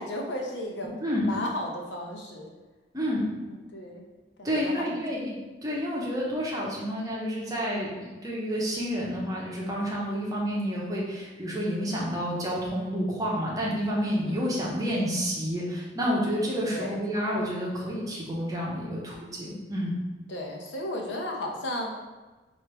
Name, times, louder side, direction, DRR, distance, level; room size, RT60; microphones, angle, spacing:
voice 1, 0.0-0.9 1.2-2.5 3.5-4.0 4.4-4.9 14.3-14.6 16.7-17.0 20.3-21.9, left 1 dB, 90° left, 0 dB, 0.7 m, -34 dB
voice 2, 1.0-1.3 2.9-3.3 4.4-20.0, equal, 20° right, -5 dB, 0.8 m, -29 dB
4.5 x 2.6 x 3.3 m, 1.2 s
head